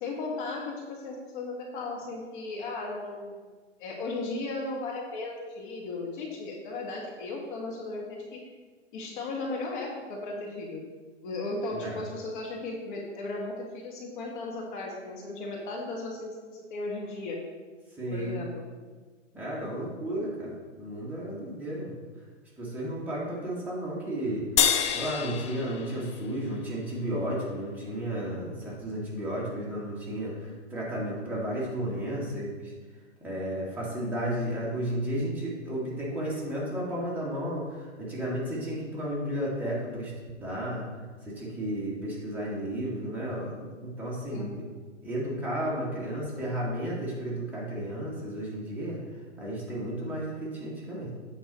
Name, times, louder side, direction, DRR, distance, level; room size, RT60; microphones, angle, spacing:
voice 1, 0.0-3.5 3.8-8.4 8.9-10.9 11.2-17.4 18.1-18.6 44.3-44.5, left 2 dB, 40° left, -1 dB, 1.6 m, -36 dB
voice 2, 18.0-18.4 19.3-22.0 22.6-24.5 24.9-32.7 33.2-40.8 41.3-44.6 45.0-49.0 49.4-51.1, right 1 dB, 5° right, -7 dB, 1.9 m, -33 dB
sound 1, 24.6-27.2, left 8 dB, 25° left, 0.4 m, -28 dB
8.5 x 5.5 x 4.3 m, 1.4 s
hypercardioid pair, 135°, 37 cm